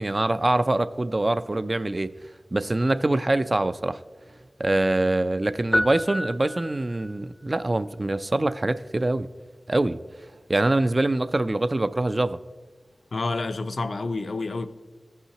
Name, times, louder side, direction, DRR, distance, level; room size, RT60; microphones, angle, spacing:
voice 1, 0.0-2.1 2.5-4.0 4.6-9.3 9.7-10.0 10.5-12.4, right 2 dB, 40° right, 0.3 m, -24 dB
sound 1, 5.7-7.2, left 1 dB, 20° left, 0.5 m, -28 dB
voice 2, 13.1-14.7, left 3 dB, 75° left, 0.4 m, -28 dB
14.5 x 5.6 x 2.9 m
cardioid pair, 40°, 0 cm